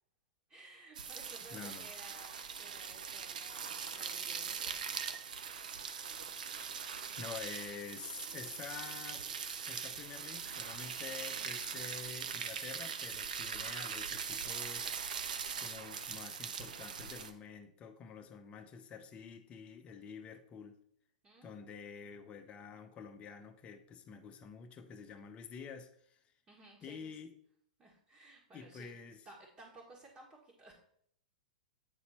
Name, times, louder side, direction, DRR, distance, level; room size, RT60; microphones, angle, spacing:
voice 1, 0.5-5.7 21.2-21.8 26.5-27.2 27.8-28.9 29.2-30.7, right 2 dB, 25° right, 1.8 m, -57 dB
sound 1, 0.9-17.3, right 6 dB, 75° right, 0.7 m, -41 dB
voice 2, 1.5-1.9 7.2-9.2 9.6-15.0 15.6-20.8 21.4-26.3 26.8-27.3 28.5-29.2, left 6 dB, 30° left, 0.8 m, -48 dB
8.9 x 4.2 x 4.3 m
hypercardioid pair, 110°, 4 cm